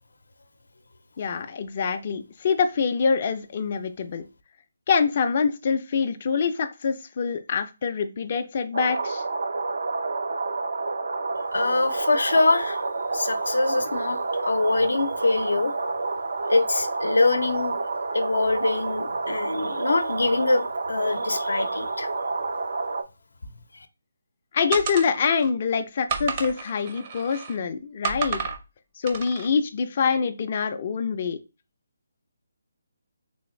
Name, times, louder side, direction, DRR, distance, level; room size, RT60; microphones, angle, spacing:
voice 1, 1.2-4.2 4.9-9.2 24.5-28.4 29.0-31.4, left 6 dB, 35° left, 0.3 m, -25 dB
sound 1, 8.7-23.0, right 3 dB, 80° right, 0.5 m, -29 dB
voice 2, 11.5-12.8 13.1-15.7 16.5-17.8 18.1-22.1, left 3 dB, 90° left, 0.5 m, -24 dB
sound 2, 24.7-25.5 26.1-27.6 28.0-28.6 29.1-29.5, right 6 dB, 25° right, 0.5 m, -31 dB
3.3 x 3.1 x 3.0 m
hypercardioid pair, 170°, 0 cm